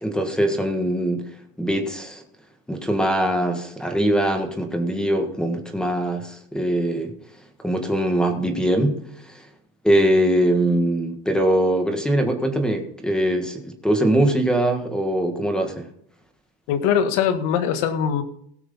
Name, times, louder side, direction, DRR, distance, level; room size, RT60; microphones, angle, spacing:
voice 1, 0.0-1.2 1.6-2.2 2.7-7.1 7.6-9.4 9.8-15.8, right 1 dB, 5° left, 5 dB, 1.6 m, -22 dB
voice 2, 16.7-18.2, left 8 dB, 65° left, 9 dB, 1.7 m, -21 dB
17.5 x 6.2 x 5.5 m, 0.69 s
cardioid pair, 150°, 29 cm